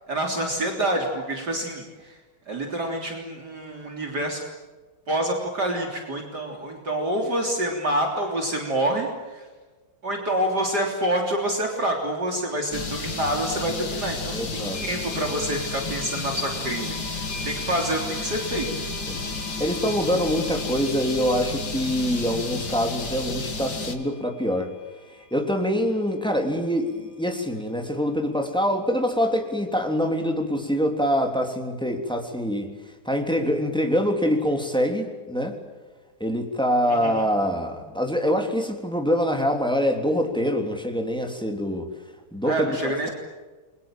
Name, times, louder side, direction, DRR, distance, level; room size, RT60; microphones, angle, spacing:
voice 1, 0.1-2.2 2.5-4.4 5.1-9.5 10.0-18.9 36.9-37.3 42.4-43.1, right 1 dB, 50° right, 1 dB, 4.0 m, -27 dB
sound 1, 12.7-24.0, left 3 dB, 55° left, 3.0 m, -32 dB
sound 2, 13.8-13.9 14.7-25.7, left 1 dB, 20° left, 8.0 m, -42 dB
voice 2, 14.3-14.8 19.1-19.2 19.6-24.7 25.3-32.7 33.0-35.6 36.2-41.9 42.3-42.7, equal, ahead, 4 dB, 3.3 m, -25 dB
29.5 x 23.5 x 7.7 m, 1.3 s
omnidirectional pair, 2.2 m